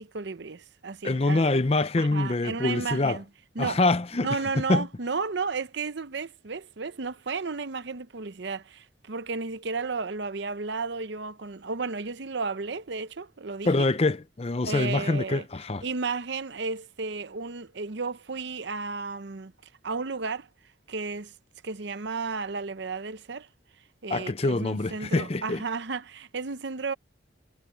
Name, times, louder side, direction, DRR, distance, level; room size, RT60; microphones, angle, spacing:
voice 1, 0.0-1.6 2.0-3.2 3.6-3.8 4.2-13.9 14.6-15.4 15.8-19.5 19.8-20.5 20.9-21.3 21.6-23.5 24.0-26.9, right 4 dB, 60° right, 0.7 m, -33 dB
voice 2, 1.0-3.2 3.6-4.3 4.7-4.9 13.6-15.8 24.1-25.6, left 2 dB, 30° left, 0.6 m, -25 dB
head